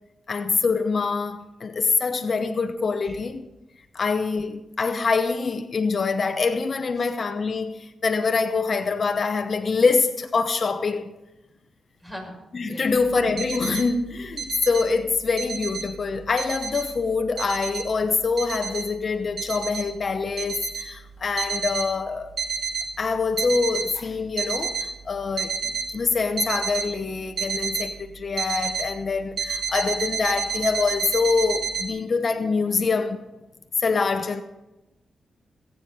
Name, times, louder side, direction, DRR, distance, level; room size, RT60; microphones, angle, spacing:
voice 1, 0.3-3.4 3.9-11.1 12.5-22.3 23.0-33.2 33.8-34.4, left 4 dB, 55° left, 0.9 m, -25 dB
voice 2, 12.0-12.4 12.7-13.0, equal, 15° right, 5.9 m, -39 dB
sound 1, 13.4-13.9 14.3-14.8 15.2-15.9 16.4-16.9 17.4-17.9 18.4-18.8 19.4-19.8 20.4-20.8 21.4-21.9 22.4-22.9 23.2-23.9 24.4-24.9 25.4-25.9 26.4-26.9 27.4-27.9 28.4-28.9 29.4-31.9, right 5 dB, 75° right, 2.4 m, -29 dB
17.5 x 8.9 x 5.4 m
cardioid pair, 60°, 0 cm